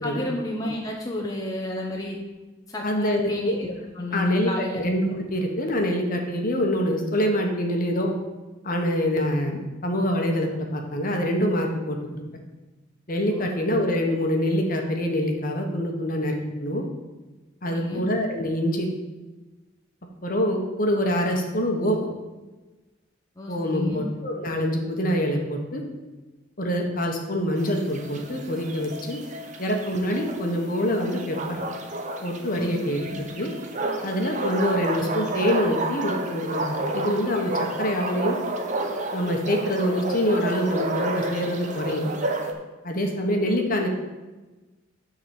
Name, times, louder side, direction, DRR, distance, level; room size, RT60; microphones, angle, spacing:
voice 1, 0.0-2.2 2.7-4.8 13.3-13.8 17.6-18.0 23.4-24.0 32.5-32.8 33.1-33.2, left 1 dB, 20° left, -2 dB, 1.0 m, -31 dB
voice 2, 2.8-3.6 4.1-8.1 8.6-12.2 13.1-16.8 17.6-18.9 20.2-22.0 23.5-25.8 26.6-29.2 29.6-31.6 32.2-33.0 33.4-33.5 34.0-37.5 37.8-38.4 39.1-42.1 42.8-43.9, equal, 45° left, 2 dB, 1.3 m, -25 dB
sound 1, 27.6-42.5, right 2 dB, 40° right, 1.0 m, -31 dB
9.8 x 4.0 x 7.3 m, 1.2 s
head